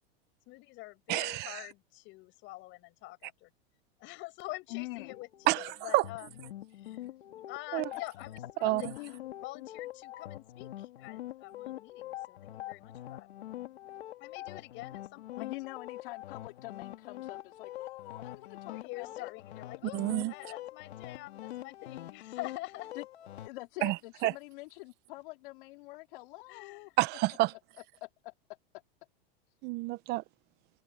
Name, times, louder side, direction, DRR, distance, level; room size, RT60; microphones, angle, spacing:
voice 1, 0.5-3.5 4.0-5.6 5.8-6.4 6.7-7.1 7.5-13.3 14.2-15.5 18.6-22.9 26.5-26.9, left 20 dB, 40° left, 7.9 m, -46 dB
voice 2, 1.1-1.6 5.5-5.6 5.9-6.0 7.7-7.8 8.6-8.8 19.9-20.3 23.8-23.9 24.2-24.3 27.0-27.5 29.6-30.2, right 20 dB, 35° right, 0.8 m, -28 dB
voice 3, 4.7-5.1 9.0-9.2 15.4-19.3 23.0-23.1 23.4-26.9 28.0-28.3, left 21 dB, 55° left, 3.4 m, -45 dB
sound 1, 4.9-23.5, left 14 dB, 85° left, 2.7 m, -45 dB
supercardioid pair, 150°, 31 cm